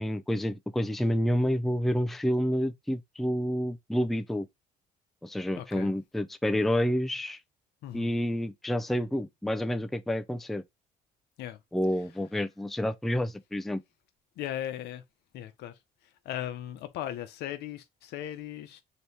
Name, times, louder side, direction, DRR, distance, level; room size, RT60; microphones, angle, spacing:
voice 1, 0.0-4.5 5.2-7.4 7.9-10.6 11.7-13.8, equal, ahead, 0.4 m, -29 dB
voice 2, 5.5-5.9 7.8-8.1 11.4-11.6 14.4-15.0 15.3-15.8 16.2-18.8, left 11 dB, 80° left, 0.8 m, -37 dB
3.4 x 3.0 x 4.2 m
cardioid pair, 110°, 17 cm